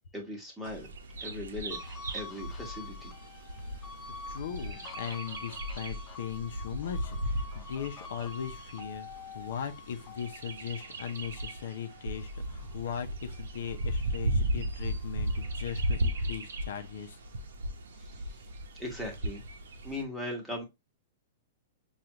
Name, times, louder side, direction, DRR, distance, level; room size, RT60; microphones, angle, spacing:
voice 1, 0.1-0.9 1.2-1.8 2.1-3.1 18.0-18.3 18.8-19.4 19.8-20.6, left 1 dB, 5° right, 1.2 m, -39 dB
Bird vocalization bird call bird song, 0.6-20.0, right 1 dB, 85° right, 0.7 m, -36 dB
sound 1, 1.7-14.3 14.7-16.4, left 5 dB, 20° left, 0.4 m, -49 dB
voice 2, 4.3-17.2, left 8 dB, 70° left, 0.6 m, -39 dB
4.9 x 2.4 x 2.9 m
hypercardioid pair, 150°, 0 cm